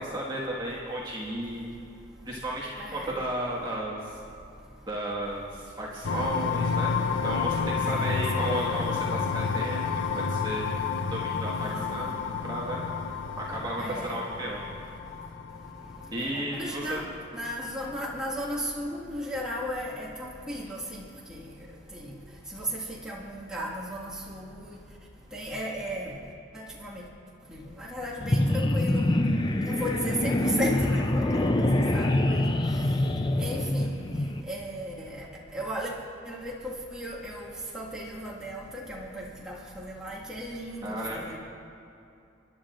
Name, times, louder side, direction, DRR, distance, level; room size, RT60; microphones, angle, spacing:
voice 1, 0.0-1.7 2.3-4.2 4.9-10.6 11.1-12.9 13.4-14.6 16.1-17.0 32.1-32.3 40.8-41.4, right 1 dB, 20° right, -5 dB, 1.7 m, -34 dB
voice 2, 2.8-3.1 7.9-8.2 11.6-12.1 13.8-14.2 16.2-17.1 17.3-21.0 21.3-21.4 21.9-22.0 22.5-24.5 25.3-26.1 26.5-27.0 27.5-29.1 29.6-31.6 31.9-32.4 33.4-34.0 34.5-35.2 35.5-35.9 36.3-41.4, equal, 5° right, -7 dB, 1.8 m, -35 dB
sound 1, 6.0-16.6, left 5 dB, 70° left, 0.5 m, -30 dB
sound 2, 28.2-34.4, left 1 dB, 20° left, 0.5 m, -25 dB
29.5 x 11.0 x 2.5 m, 2.7 s
head